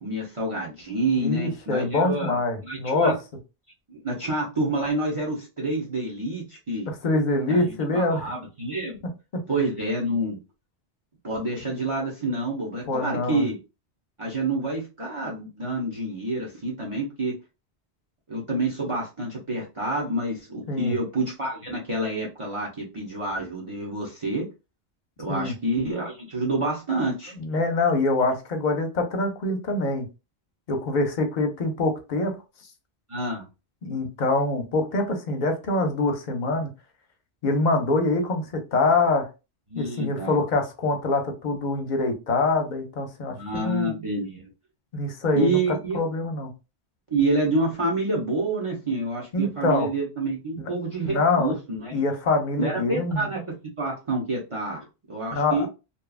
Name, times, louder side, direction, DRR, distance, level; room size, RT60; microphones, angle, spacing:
voice 1, 0.0-3.1 3.9-6.9 7.5-9.0 9.5-10.4 11.2-13.6 14.2-17.3 18.3-24.5 25.2-27.3 33.1-33.4 39.7-40.4 43.3-44.5 45.3-46.0 47.1-52.0 52.6-53.4 53.8-54.8 55.1-55.7, right 2 dB, 35° right, -2 dB, 0.7 m, -28 dB
voice 2, 1.2-3.2 6.9-8.3 12.9-13.5 20.7-21.0 25.3-25.5 27.3-30.1 30.7-32.4 33.8-36.7 37.4-38.4 38.7-39.3 39.8-43.9 44.9-45.6 45.9-46.5 49.3-49.9 51.0-51.5 51.9-53.3 55.3-55.7, left 2 dB, 50° left, 4 dB, 0.7 m, -24 dB
2.8 x 2.3 x 2.3 m, 0.28 s
omnidirectional pair, 1.1 m